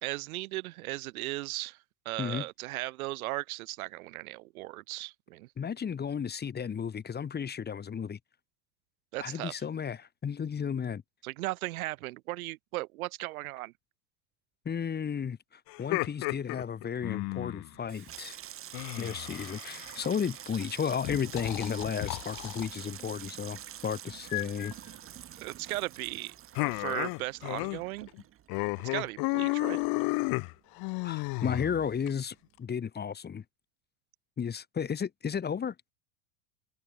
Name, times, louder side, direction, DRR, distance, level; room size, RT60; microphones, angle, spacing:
voice 1, 0.0-1.8 2.1-5.5 9.1-9.5 11.2-13.7 25.4-26.3 26.7-28.1 28.8-29.8, right 19 dB, 75° right, 3.5 m, -36 dB
voice 2, 5.6-8.2 9.2-11.0 14.6-18.4 19.0-24.7 31.0-33.4 34.4-35.7, left 7 dB, 25° left, 3.0 m, -33 dB
sound 1, 15.7-17.7 18.7-20.1 21.0-22.7 24.3-24.7 26.6-27.8 28.1-28.2 28.5-32.1, left 28 dB, 55° left, 2.8 m, -33 dB
Water tap faucet / Sink (filling or washing), 17.7-30.6 30.9-31.5 31.8-32.1, right 11 dB, 30° right, 1.5 m, -47 dB
open air
supercardioid pair, 120°, 43 cm